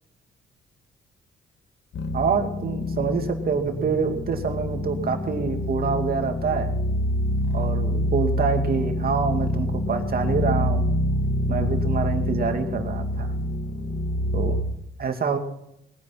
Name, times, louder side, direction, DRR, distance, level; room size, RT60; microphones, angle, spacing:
sound 1, 1.9-14.6, left 1 dB, 65° left, 2.4 m, -26 dB
voice 1, 2.1-6.7 7.5-10.9 11.5-13.3 14.3-14.6 15.0-15.4, right 5 dB, 50° right, 5 dB, 2.5 m, -26 dB
20.0 x 9.8 x 6.0 m, 0.79 s
cardioid pair, 90°, 20 cm